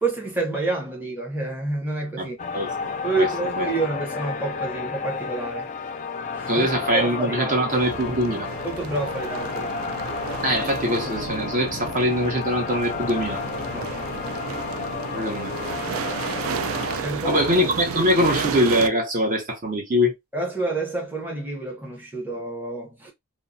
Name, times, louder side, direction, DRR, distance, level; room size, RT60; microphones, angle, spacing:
voice 1, 0.0-2.4 3.0-5.7 6.3-6.7 6.9-7.6 8.6-9.8 13.7-13.9 14.4-14.6 17.0-17.4 20.3-23.1, right 3 dB, 10° right, 0.7 m, -28 dB
voice 2, 2.2-2.7 3.2-3.3 3.6-3.7 6.5-8.5 10.4-13.4 15.1-15.5 17.0-20.1, equal, 40° right, 0.8 m, -23 dB
sound 1, 2.4-17.0, left 5 dB, 35° left, 0.3 m, -31 dB
sound 2, 7.7-18.9, right 6 dB, 80° right, 0.3 m, -33 dB
3.0 x 2.1 x 2.5 m
head